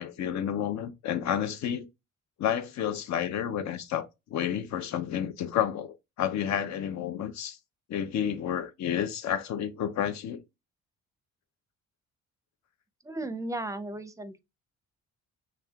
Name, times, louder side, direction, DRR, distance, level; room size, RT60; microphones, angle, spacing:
voice 1, 0.0-1.9 2.4-7.6 7.9-10.4, left 9 dB, 65° left, 0.7 m, -30 dB
voice 2, 13.0-14.4, right 2 dB, 10° right, 0.6 m, -35 dB
5.4 x 3.3 x 2.3 m
cardioid pair, 90°, 30 cm